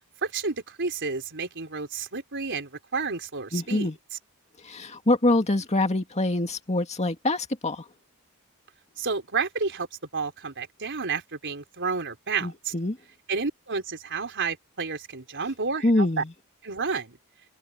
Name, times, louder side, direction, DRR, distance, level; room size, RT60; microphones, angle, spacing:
voice 1, 0.2-3.9 9.0-9.9 10.1-12.7 13.3-16.2 16.6-17.2, right 4 dB, 55° right, 4.3 m, -30 dB
voice 2, 3.5-4.0 4.6-7.8 12.4-13.0 15.8-16.3, left 2 dB, 30° left, 2.1 m, -25 dB
head